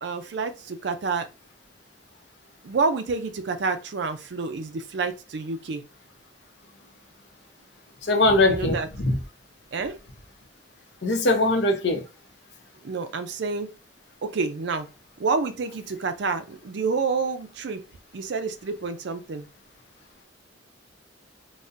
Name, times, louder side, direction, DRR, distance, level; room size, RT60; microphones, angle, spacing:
voice 1, 0.0-1.3 2.6-5.8 8.5-8.9 9.7-10.0 12.8-13.7 14.2-14.9 15.2-17.8 18.1-19.5, right 4 dB, 65° right, 0.4 m, -28 dB
voice 2, 8.0-8.8 9.1-9.2 11.0-12.0, left 2 dB, 65° left, 0.7 m, -20 dB
4.0 x 2.1 x 2.5 m
head